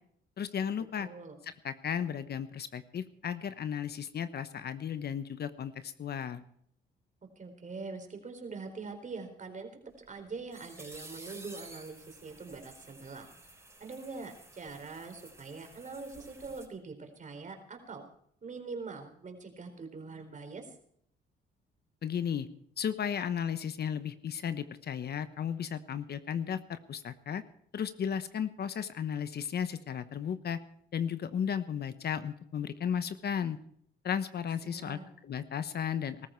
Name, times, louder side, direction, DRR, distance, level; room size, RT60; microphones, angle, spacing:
voice 1, 0.4-1.1 1.6-6.4 22.0-22.5 22.8-27.4 27.7-30.6 30.9-33.6 34.0-36.3, left 8 dB, 55° left, 12 dB, 1.1 m, -34 dB
voice 2, 1.0-1.4 7.4-9.7 10.1-13.3 13.8-18.1 18.4-20.7 34.6-35.1, right 4 dB, 40° right, 5 dB, 4.1 m, -43 dB
sound 1, 9.9-16.7, right 2 dB, 10° right, 4.2 m, -52 dB
20.0 x 14.0 x 4.6 m, 0.66 s
cardioid pair, 90°, 20 cm